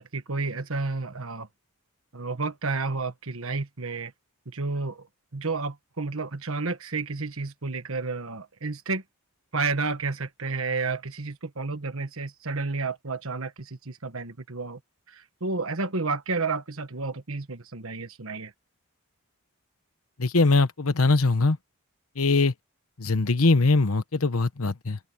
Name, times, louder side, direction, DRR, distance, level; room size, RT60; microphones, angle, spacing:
voice 1, 0.0-1.5 2.1-4.1 4.5-5.0 5.3-9.0 9.5-14.8 15.4-18.5, right 3 dB, 65° right, 1.4 m, -31 dB
voice 2, 20.2-21.6 22.2-22.5 23.0-25.0, left 3 dB, 70° left, 1.1 m, -22 dB
head